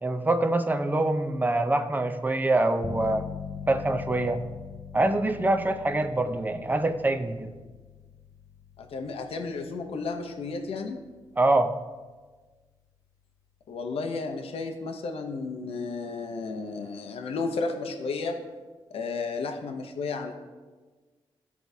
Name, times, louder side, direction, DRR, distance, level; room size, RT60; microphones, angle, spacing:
voice 1, 0.0-3.2 3.7-4.4 4.9-7.5 11.4-11.7, right 2 dB, 20° right, 7 dB, 0.6 m, -25 dB
sound 1, 2.8-13.4, left 6 dB, 35° left, 0.5 m, -43 dB
voice 2, 8.8-11.0 13.7-18.4 18.9-20.3, left 4 dB, 85° left, 4 dB, 0.7 m, -33 dB
13.5 x 4.6 x 2.7 m, 1.3 s
cardioid pair, 85°, 10 cm